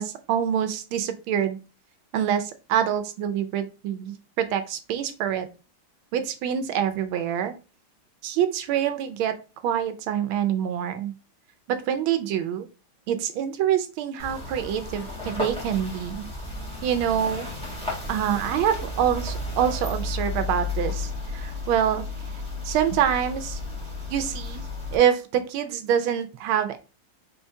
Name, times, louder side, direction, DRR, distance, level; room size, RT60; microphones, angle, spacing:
voice 1, 0.0-1.6 2.1-5.5 6.1-7.5 8.2-9.3 9.6-11.1 11.7-12.7 13.1-16.2 16.8-17.5 18.1-22.0 22.6-23.6 24.1-24.6 24.9-26.8, right 9 dB, 80° right, 10 dB, 1.4 m, -25 dB
sound 1, 14.2-25.0, left 2 dB, 5° left, 1.5 m, -33 dB
4.5 x 3.7 x 2.7 m, 0.32 s
omnidirectional pair, 2.3 m